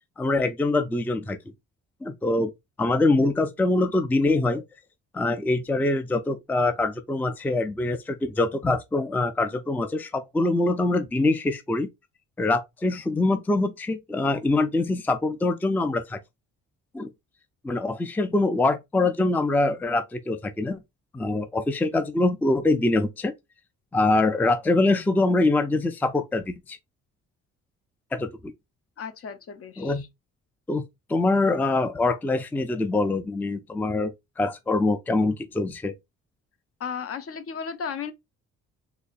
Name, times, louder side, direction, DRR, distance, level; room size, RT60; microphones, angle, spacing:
voice 1, 0.2-1.4 2.0-2.5 2.8-4.6 5.1-11.9 12.4-16.2 16.9-17.1 17.6-20.8 21.1-23.3 23.9-26.8 28.1-28.5 29.8-30.0 30.7-30.8 31.1-35.9, left 2 dB, 5° left, 0.4 m, -24 dB
voice 2, 29.0-30.1 36.8-38.1, left 6 dB, 50° left, 0.7 m, -34 dB
4.1 x 3.1 x 2.4 m
cardioid pair, 90°, 30 cm